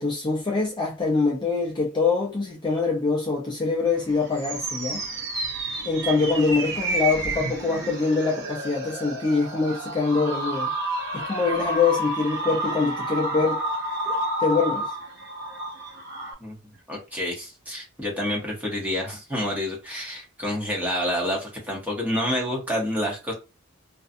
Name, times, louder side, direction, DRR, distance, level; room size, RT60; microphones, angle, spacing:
voice 1, 0.0-5.0 5.8-10.7 11.1-13.7 14.0-14.9, left 4 dB, 20° left, 0.5 m, -24 dB
sound 1, 4.0-16.3, right 1 dB, 55° right, 0.7 m, -30 dB
voice 2, 16.9-23.3, equal, 5° right, 0.9 m, -28 dB
2.5 x 2.2 x 2.5 m
head